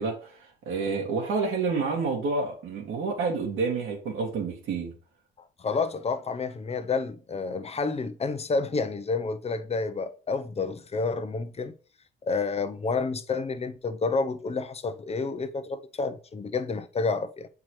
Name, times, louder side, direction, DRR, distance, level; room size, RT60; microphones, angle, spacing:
voice 1, 0.0-4.9, right 4 dB, 85° right, 2.2 m, -29 dB
voice 2, 5.6-11.7 12.2-17.5, left 4 dB, 30° left, 0.7 m, -29 dB
7.3 x 4.6 x 3.2 m
cardioid pair, 90°, 20 cm